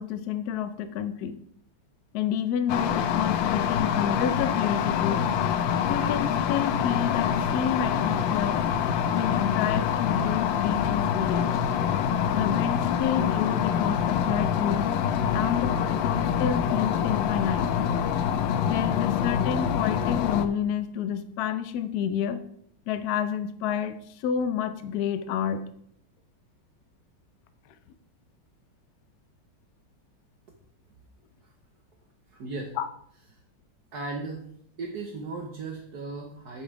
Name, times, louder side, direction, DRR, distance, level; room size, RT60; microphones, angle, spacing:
voice 1, 0.0-1.4 2.1-5.3 5.9-8.7 9.1-11.5 12.3-14.9 15.3-17.7 18.6-22.4 22.9-25.6 32.8-32.9, left 8 dB, 65° left, 11 dB, 1.0 m, -29 dB
sound 1, 2.7-20.5, left 8 dB, 80° left, 1.4 m, -26 dB
voice 2, 32.3-32.7 33.9-34.4 34.8-36.6, right 3 dB, 60° right, 2 dB, 1.4 m, -36 dB
8.7 x 5.4 x 4.7 m, 0.68 s
omnidirectional pair, 2.1 m